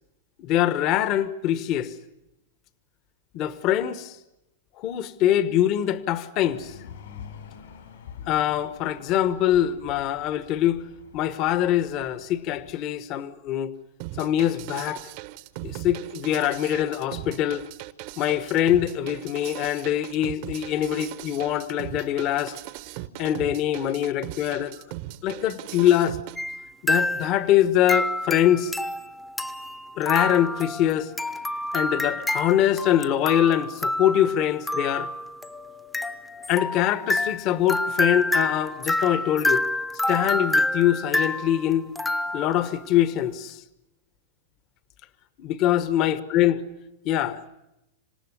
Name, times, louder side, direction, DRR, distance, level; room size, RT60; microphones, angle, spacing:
voice 1, 0.4-1.9 3.3-4.2 4.8-6.8 8.3-10.8 11.1-13.7 14.2-15.0 15.6-17.7 18.2-22.6 23.2-24.8 25.2-26.2 26.8-28.7 30.0-31.1 31.7-35.1 36.5-39.7 40.1-41.9 42.3-43.6 45.4-46.6 47.0-47.6, left 11 dB, 30° left, 1.1 m, -23 dB
sound 1, 6.4-12.7, left 8 dB, 70° left, 5.1 m, -46 dB
sound 2, 14.0-26.4, right 16 dB, 40° right, 1.0 m, -38 dB
sound 3, 26.4-26.6 26.9-27.5 27.9-42.8, left 2 dB, 5° left, 0.8 m, -28 dB
27.0 x 18.0 x 9.8 m
supercardioid pair, 165°, 0 cm